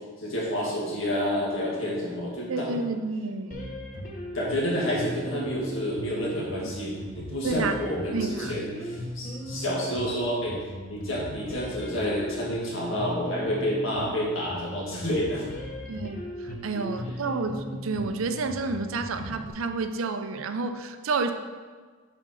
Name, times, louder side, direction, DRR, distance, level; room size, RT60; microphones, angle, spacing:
voice 1, 0.2-2.8 4.3-10.6 10.9-15.4, equal, 70° left, -4 dB, 2.0 m, -29 dB
voice 2, 2.5-3.7 7.4-7.8 8.1-8.5 15.9-16.2 16.6-21.3, right 3 dB, 80° right, 8 dB, 0.5 m, -30 dB
sound 1, 3.5-19.5, equal, 40° left, 0.9 m, -38 dB
6.1 x 4.3 x 5.4 m, 1.5 s
head